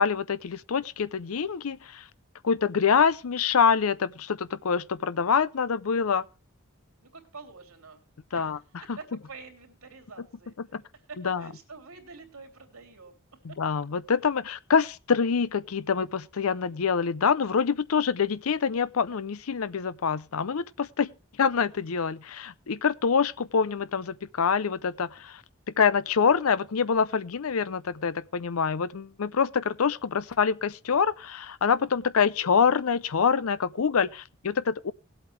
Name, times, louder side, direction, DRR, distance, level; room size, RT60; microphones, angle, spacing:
voice 1, 0.0-2.0 2.4-6.2 8.3-8.6 10.7-10.8 11.2-11.4 13.4-21.1 21.4-25.4 25.8-34.9, left 6 dB, 85° left, 0.6 m, -25 dB
voice 2, 7.0-8.0 8.3-10.8 11.1-13.4, right 4 dB, 90° right, 3.0 m, -47 dB
19.0 x 8.1 x 3.3 m
head